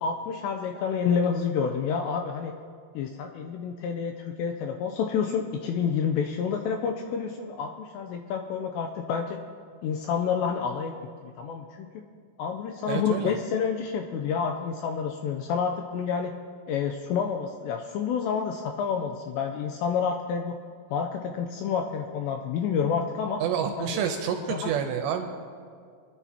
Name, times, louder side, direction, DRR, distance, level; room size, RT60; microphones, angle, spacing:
voice 1, 0.0-2.6 3.0-9.4 9.8-11.9 12.4-16.3 16.7-20.6 20.9-23.4 23.8-24.0 24.5-24.7, left 6 dB, 85° left, 4 dB, 2.5 m, -29 dB
voice 2, 12.9-13.3 23.4-25.3, right 8 dB, 80° right, 4 dB, 2.6 m, -28 dB
23.5 x 11.0 x 2.8 m, 2.2 s
omnidirectional pair, 5.6 m